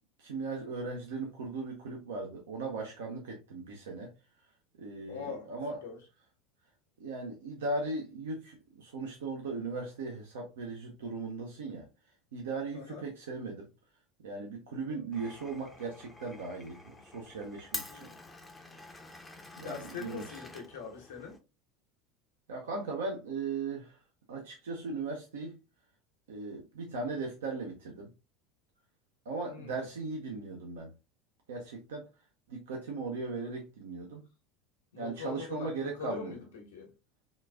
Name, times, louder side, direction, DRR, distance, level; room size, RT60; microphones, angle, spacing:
voice 1, 0.2-4.1 4.8-5.8 7.0-11.9 12.3-13.7 14.2-18.1 19.6-20.2 22.5-24.0 24.3-25.6 26.3-28.1 29.2-30.9 31.5-32.1 32.5-34.2 35.0-36.3, right 3 dB, 70° right, 0.6 m, -38 dB
voice 2, 5.1-5.5 5.8-6.0 12.7-13.1 14.8-15.0 17.9-18.2 19.6-21.4 29.4-29.7 34.9-36.9, left 5 dB, 75° left, 1.0 m, -43 dB
Glass, 15.1-21.4, left 2 dB, 15° left, 0.6 m, -47 dB
3.8 x 2.4 x 2.3 m
figure-of-eight pair, 75°, 0 cm